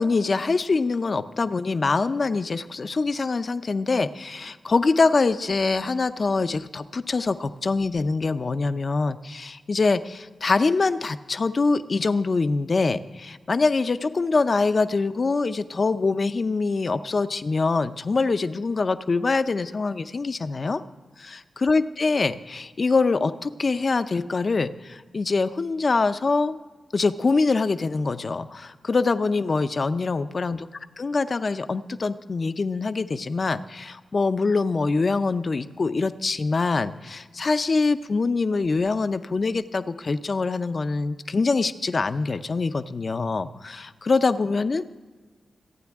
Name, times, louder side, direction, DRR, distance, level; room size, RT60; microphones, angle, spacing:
voice 1, 0.0-20.8 21.2-26.6 26.9-30.7 31.0-44.9, left 3 dB, 40° left, 12 dB, 0.5 m, -24 dB
26.0 x 9.3 x 3.6 m, 1.4 s
wide cardioid pair, 145°, 0 cm